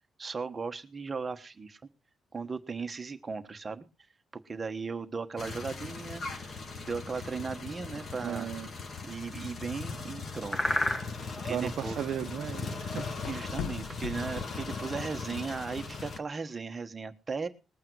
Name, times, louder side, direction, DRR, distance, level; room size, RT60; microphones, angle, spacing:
voice 1, 0.2-1.8 2.3-3.8 4.3-8.5 9.0-10.7 11.4-12.0 13.3-17.5, right 4 dB, 20° right, 1.2 m, -37 dB
sound 1, 5.4-16.2, left 4 dB, 35° left, 1.5 m, -39 dB
sound 2, 5.5-15.5, left 1 dB, 20° left, 1.2 m, -40 dB
voice 2, 8.2-8.7 11.5-13.1, right 10 dB, 60° right, 0.8 m, -35 dB
sound 3, 9.4-15.2, left 8 dB, 75° left, 0.9 m, -43 dB
20.0 x 8.7 x 4.7 m
cardioid pair, 175°, 0 cm